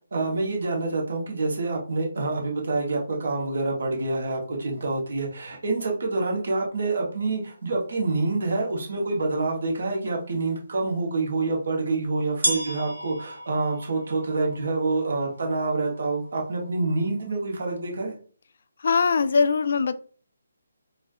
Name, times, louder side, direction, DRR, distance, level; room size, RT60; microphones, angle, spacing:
voice 1, 0.1-18.1, right 3 dB, 65° right, 0 dB, 1.4 m, -27 dB
sound 1, 11.2-11.3 12.4-18.0, right 2 dB, 80° right, 1.1 m, -35 dB
voice 2, 18.8-20.0, left 5 dB, 60° left, 12 dB, 0.3 m, -21 dB
4.2 x 2.5 x 2.7 m, 0.41 s
figure-of-eight pair, 150°, 0 cm